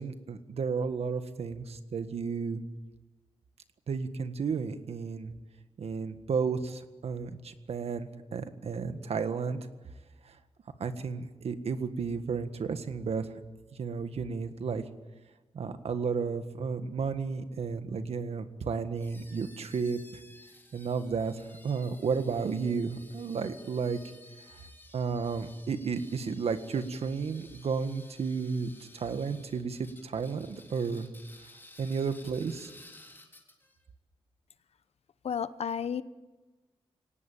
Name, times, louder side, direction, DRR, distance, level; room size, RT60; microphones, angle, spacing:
voice 1, 0.0-2.6 3.9-5.3 5.8-9.6 10.2-10.3 10.8-13.3 13.7-14.8 15.5-20.2 20.7-24.0 24.5-24.6 24.9-31.1 31.8-32.7, right 5 dB, 75° right, 9 dB, 1.6 m, -33 dB
sound 1, 19.0-33.8, left 2 dB, 20° left, 3.5 m, -55 dB
voice 2, 35.2-36.0, left 7 dB, 75° left, 14 dB, 0.9 m, -32 dB
24.0 x 18.0 x 9.0 m, 1.2 s
wide cardioid pair, 90°, 11 cm